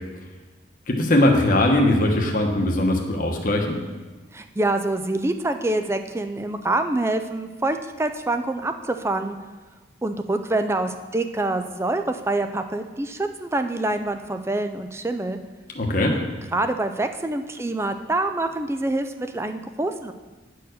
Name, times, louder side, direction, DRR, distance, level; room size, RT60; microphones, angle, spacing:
voice 1, 0.9-3.8 15.7-16.1, left 1 dB, 45° left, 1 dB, 1.0 m, -20 dB
voice 2, 4.3-9.4 10.0-15.4 16.1-16.2 16.5-20.1, right 2 dB, 15° right, 7 dB, 0.4 m, -26 dB
9.7 x 4.6 x 6.4 m, 1.3 s
head